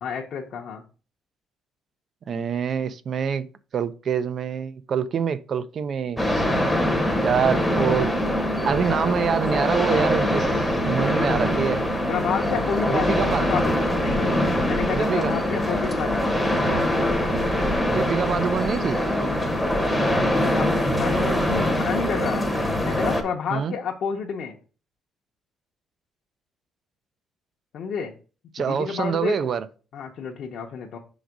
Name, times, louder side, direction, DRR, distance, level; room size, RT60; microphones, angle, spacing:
voice 1, 0.0-0.8 12.1-16.3 20.2-22.4 22.8-24.6 27.7-28.1 28.7-29.4 29.9-31.0, left 6 dB, 55° left, 0.7 m, -30 dB
voice 2, 2.3-3.5 3.7-6.5 7.2-8.1 8.6-11.8 12.8-13.5 14.3-14.4 14.9-15.3 17.9-19.0 23.5-23.7 28.5-29.7, right 7 dB, 40° right, 0.4 m, -25 dB
sound 1, 6.2-23.2, left 1 dB, ahead, 0.8 m, -23 dB
6.0 x 3.9 x 4.6 m
cardioid pair, 160°, 0 cm